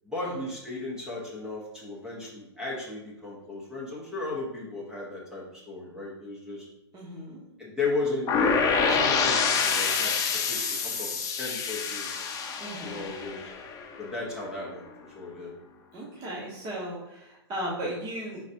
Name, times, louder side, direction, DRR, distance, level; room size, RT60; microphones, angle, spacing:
voice 1, 0.0-6.7 7.6-8.6 8.9-12.3 12.8-13.5 14.0-14.9 15.1-15.5, left 3 dB, 5° right, -5 dB, 1.0 m, -35 dB
voice 2, 6.9-7.4 12.6-13.1 15.9-18.4, right 1 dB, 30° right, -6 dB, 1.2 m, -36 dB
sound 1, 8.3-14.1, left 5 dB, 25° left, 0.5 m, -27 dB
5.1 x 4.0 x 2.6 m, 0.91 s
hypercardioid pair, 120°, 14 cm